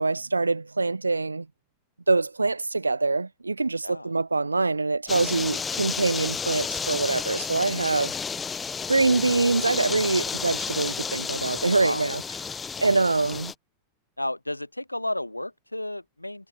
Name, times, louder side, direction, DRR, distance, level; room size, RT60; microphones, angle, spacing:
voice 1, 0.0-1.5 2.1-8.2 8.9-12.2 12.8-13.5, right 3 dB, 80° right, 0.8 m, -24 dB
sound 1, 5.1-13.5, left 6 dB, 15° left, 1.2 m, -32 dB
voice 2, 11.8-12.1 14.2-16.5, left 1 dB, 85° left, 0.6 m, -32 dB
figure-of-eight pair, 90°, 0 cm